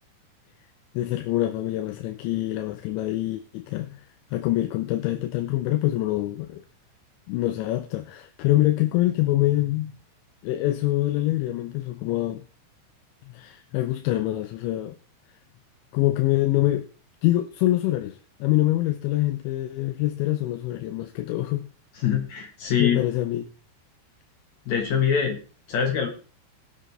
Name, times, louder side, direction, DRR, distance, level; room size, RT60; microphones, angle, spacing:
voice 1, 0.9-4.0 4.3-6.6 7.3-9.9 10.4-12.5 13.3-15.0 15.9-16.8 17.2-21.7 22.8-23.4, left 16 dB, 90° left, 6 dB, 3.1 m, -25 dB
voice 2, 22.0-23.0 24.7-25.4 25.7-26.1, left 7 dB, 70° left, 3 dB, 1.7 m, -24 dB
20.5 x 7.9 x 3.2 m, 0.37 s
omnidirectional pair, 5.1 m